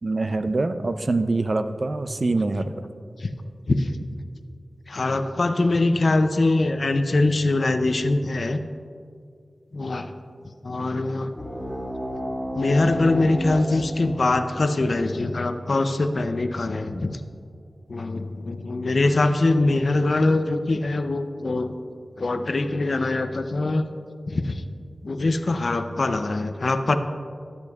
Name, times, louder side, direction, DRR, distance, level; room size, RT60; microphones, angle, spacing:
voice 1, 0.0-2.7, right 3 dB, 55° right, 10 dB, 0.4 m, -24 dB
voice 2, 3.7-4.0 4.9-8.6 9.7-10.1 10.6-11.3 12.5-17.2 17.9-21.7 22.2-23.9 24.3-24.6 25.0-27.0, left 2 dB, 65° left, 9 dB, 0.5 m, -23 dB
sound 1, 11.3-16.4, equal, 10° left, 1.8 m, -33 dB
13.0 x 8.0 x 2.4 m, 2.3 s
cardioid pair, 45°, 0 cm